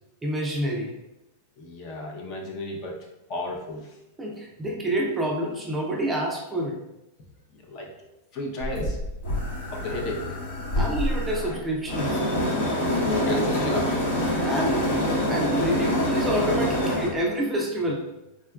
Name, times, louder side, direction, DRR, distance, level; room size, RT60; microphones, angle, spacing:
voice 1, 0.2-1.0 4.2-6.8 10.8-12.2 14.4-14.9 15.3-18.0, right 1 dB, 10° right, -2 dB, 0.4 m, -28 dB
voice 2, 1.6-3.0 3.3-3.9 7.7-7.9 8.3-9.0 9.7-10.3 12.8-14.2, left 2 dB, 40° left, 0 dB, 0.6 m, -32 dB
sound 1, 8.6-17.2, equal, 70° left, 1.0 m, -26 dB
3.6 x 2.2 x 2.3 m, 0.94 s
supercardioid pair, 150°, 0 cm